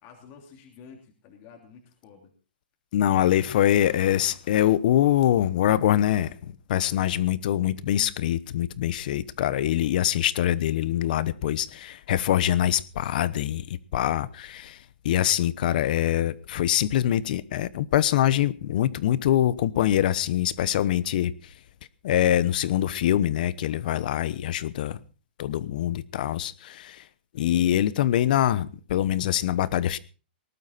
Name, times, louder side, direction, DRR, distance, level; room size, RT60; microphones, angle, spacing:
voice 1, 0.0-2.3, left 6 dB, 35° left, 3.1 m, -50 dB
voice 2, 2.9-14.8 15.0-21.3 22.0-25.0 25.4-27.0 27.3-30.0, left 12 dB, 55° left, 1.0 m, -24 dB
19.0 x 12.0 x 4.1 m
hypercardioid pair, 145°, 6 cm